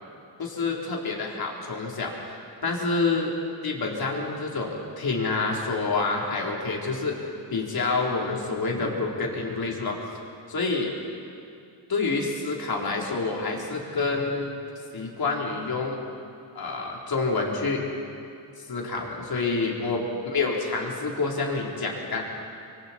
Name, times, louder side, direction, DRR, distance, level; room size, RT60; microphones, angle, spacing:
voice 1, 0.4-2.4 2.6-3.3 3.6-7.2 7.5-10.0 10.5-10.9 11.9-14.5 14.9-16.0 16.6-17.8 18.6-22.2, left 3 dB, 50° left, -1 dB, 4.0 m, -28 dB
25.5 x 23.5 x 4.5 m, 2.5 s
cardioid pair, 95°, 48 cm